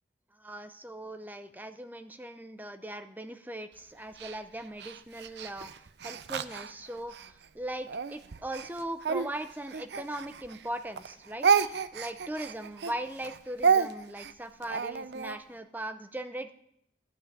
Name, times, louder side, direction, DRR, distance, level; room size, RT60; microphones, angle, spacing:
voice 1, 0.4-5.7 6.0-16.5, right 1 dB, 10° right, 9 dB, 0.6 m, -39 dB
Speech, 4.2-7.3 7.9-10.7 11.0-15.4, right 6 dB, 75° right, 0.5 m, -30 dB
12.0 x 5.6 x 9.1 m, 0.76 s
head